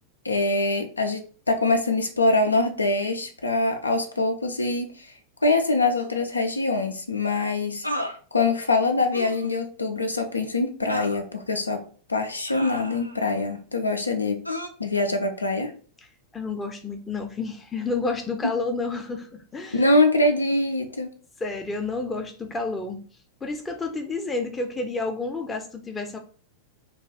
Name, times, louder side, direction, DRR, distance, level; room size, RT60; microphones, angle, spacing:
voice 1, 0.2-5.1 5.4-7.9 8.3-11.8 12.1-14.4 14.8-15.7 19.7-21.1, left 2 dB, 80° left, 5 dB, 0.4 m, -24 dB
sound 1, 5.9-6.1 7.8-8.2 9.1-9.5 10.9-11.2 12.5-13.3 14.4-14.7, equal, 90° right, 0.4 m, -32 dB
voice 2, 16.3-19.9 21.4-23.0 23.4-26.2, left 3 dB, 15° left, 3 dB, 0.5 m, -30 dB
2.4 x 2.3 x 3.3 m, 0.41 s
figure-of-eight pair, 90°, 0 cm